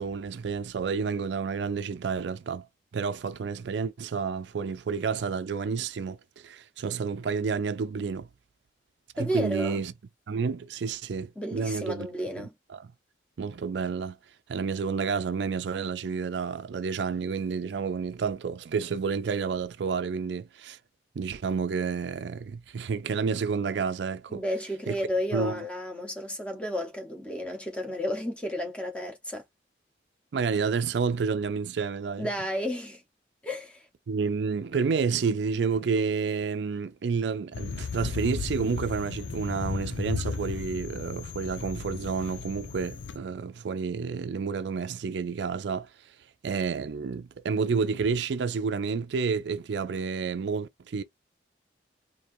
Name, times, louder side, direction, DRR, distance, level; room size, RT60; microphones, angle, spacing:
voice 1, 0.0-2.7 2.9-8.3 9.2-9.9 10.3-12.1 13.4-14.2 14.5-20.8 21.2-24.4 24.9-25.0 25.3-25.6 30.3-32.3 34.1-45.9 46.4-51.0, right 5 dB, 70° right, 0.4 m, -30 dB
voice 2, 9.2-9.8 11.4-12.5 24.3-29.4 32.2-33.0 33.4-33.9, equal, 5° left, 0.9 m, -32 dB
sound 1, 37.5-43.2, left 5 dB, 85° left, 0.5 m, -35 dB
4.4 x 2.7 x 2.6 m
head